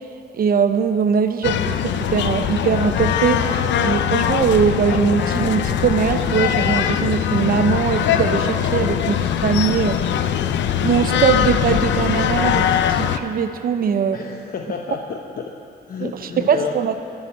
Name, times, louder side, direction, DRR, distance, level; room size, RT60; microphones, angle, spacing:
voice 1, 0.3-3.4 3.8-9.2 9.4-10.0 10.8-14.2 16.0-16.9, right 7 dB, 55° right, 9 dB, 0.8 m, -21 dB
sound 1, 1.4-13.2, left 9 dB, 85° left, 0.6 m, -21 dB
voice 2, 14.1-15.5 15.9-16.8, left 6 dB, 55° left, 2 dB, 0.9 m, -30 dB
20.5 x 7.4 x 7.4 m, 2.5 s
wide cardioid pair, 155°, 18 cm